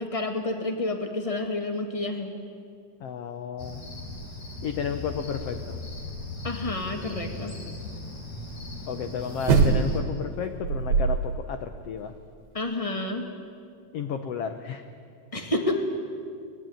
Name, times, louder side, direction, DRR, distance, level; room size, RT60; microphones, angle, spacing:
voice 1, 0.0-2.3 6.4-7.5 12.5-13.3 15.3-15.8, left 2 dB, 20° left, 4 dB, 1.0 m, -29 dB
voice 2, 3.0-3.8 4.6-5.8 8.9-12.1 13.9-14.8, left 6 dB, 70° left, 7 dB, 1.4 m, -32 dB
Cricket, 3.6-10.0, left 2 dB, 50° left, 5.1 m, -38 dB
sound 1, 9.4-10.2 10.6-11.4 11.7-11.8, right 5 dB, 85° right, 3.6 m, -22 dB
24.5 x 19.5 x 9.3 m, 2.2 s
omnidirectional pair, 4.0 m